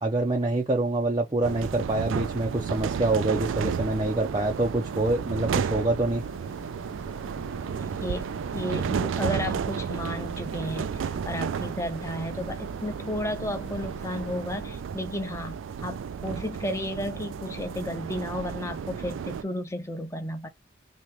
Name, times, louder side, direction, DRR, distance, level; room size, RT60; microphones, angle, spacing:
voice 1, 0.0-6.2, right 2 dB, 25° right, 0.5 m, -26 dB
sound 1, 1.4-14.8, left 1 dB, 80° left, 1.4 m, -47 dB
sound 2, 1.4-19.4, right 7 dB, 85° right, 0.3 m, -32 dB
voice 2, 7.7-20.5, left 1 dB, 15° left, 0.8 m, -33 dB
2.9 x 2.9 x 3.4 m
head